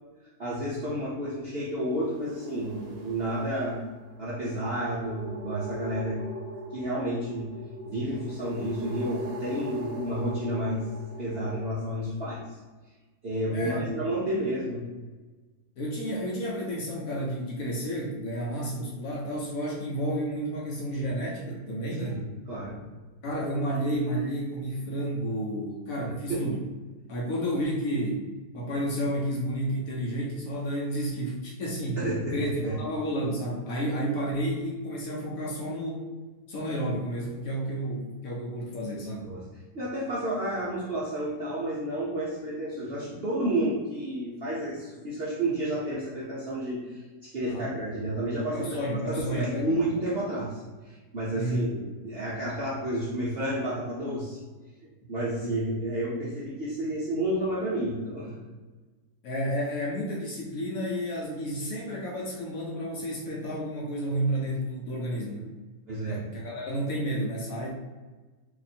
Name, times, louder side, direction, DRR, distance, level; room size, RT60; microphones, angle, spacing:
voice 1, 0.4-3.8 4.2-6.2 6.7-7.5 7.8-10.8 11.2-12.4 13.2-14.8 22.0-22.8 26.3-26.4 32.0-32.8 39.2-39.4 39.7-48.8 49.1-54.4 55.1-58.4 65.9-66.2, right 1 dB, 55° right, -8 dB, 0.7 m, -31 dB
sound 1, 1.7-11.6, equal, 70° right, 1.1 m, -40 dB
voice 2, 13.5-13.9 15.8-22.2 23.2-26.6 27.1-32.0 32.3-32.5 32.8-36.1 36.5-39.3 47.5-47.7 48.5-49.8 51.3-51.7 59.2-65.5 66.1-67.7, equal, 65° left, -2 dB, 1.0 m, -31 dB
2.9 x 2.5 x 4.1 m, 1.3 s
omnidirectional pair, 1.8 m